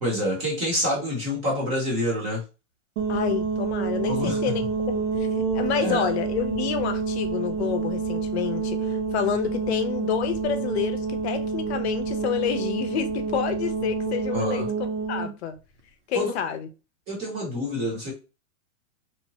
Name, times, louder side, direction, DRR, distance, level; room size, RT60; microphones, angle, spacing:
voice 1, 0.0-2.4 4.1-4.5 5.8-6.1 14.3-14.7 16.1-16.3 17.1-18.1, left 1 dB, 15° right, 0.7 m, -27 dB
sound 1, 3.0-15.3, right 5 dB, 65° right, 0.9 m, -28 dB
voice 2, 3.1-5.3 5.5-15.6 16.1-16.7, left 9 dB, 60° left, 0.6 m, -29 dB
3.0 x 2.1 x 2.7 m
supercardioid pair, 175°, 38 cm